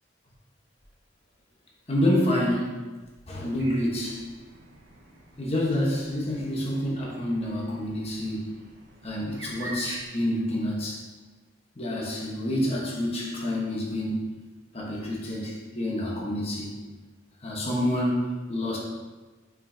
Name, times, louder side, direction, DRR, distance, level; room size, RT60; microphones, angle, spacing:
voice 1, 1.9-2.8 3.3-4.2 5.4-8.5 9.0-11.0 11.8-14.3 14.7-16.7 17.4-18.8, left 1 dB, 35° left, -4 dB, 1.2 m, -28 dB
sound 1, 3.6-10.0, right 2 dB, 70° right, 1.2 m, -45 dB
9.4 x 4.9 x 2.8 m, 1.3 s
head